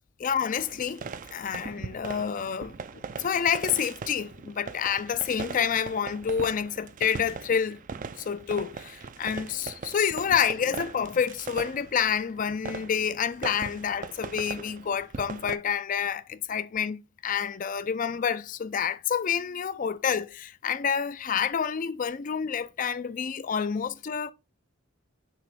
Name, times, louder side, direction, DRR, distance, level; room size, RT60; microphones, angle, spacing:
voice 1, 0.2-7.8 8.2-24.3, left 7 dB, 40° left, 0.4 m, -28 dB
sound 1, 0.6-15.6, right 5 dB, 40° right, 0.4 m, -40 dB
6.8 x 3.0 x 4.9 m
head